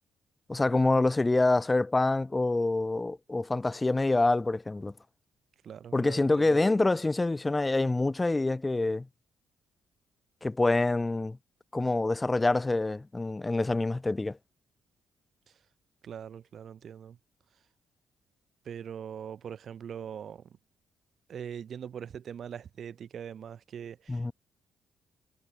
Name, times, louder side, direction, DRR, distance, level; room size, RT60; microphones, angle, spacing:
voice 1, 0.5-4.9 5.9-9.1 10.4-11.4 11.7-14.4 24.1-24.3, left 2 dB, 20° left, 0.5 m, -26 dB
voice 2, 5.6-6.6 15.5-15.6 16.0-17.2 18.6-20.6 21.3-24.3, right 8 dB, 55° right, 2.5 m, -42 dB
cardioid pair, 90°, 0 cm